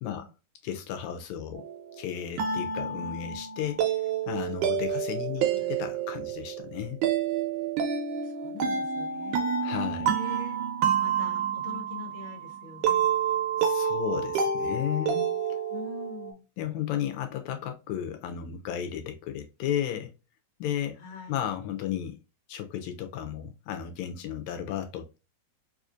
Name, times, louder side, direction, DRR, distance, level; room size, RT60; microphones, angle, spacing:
voice 1, 0.6-1.7 2.0-7.0 9.6-10.1 13.6-15.6 16.6-20.1 20.6-21.0 21.3-22.2 22.5-25.2, left 10 dB, 80° left, 1.8 m, -34 dB
sound 1, 1.5-16.3, right 7 dB, 90° right, 2.2 m, -29 dB
voice 2, 5.4-5.8 8.2-9.7 10.0-10.6 11.0-13.0 15.7-16.4 21.0-21.4, left 5 dB, 50° left, 0.9 m, -43 dB
4.8 x 2.5 x 2.3 m
omnidirectional pair, 3.4 m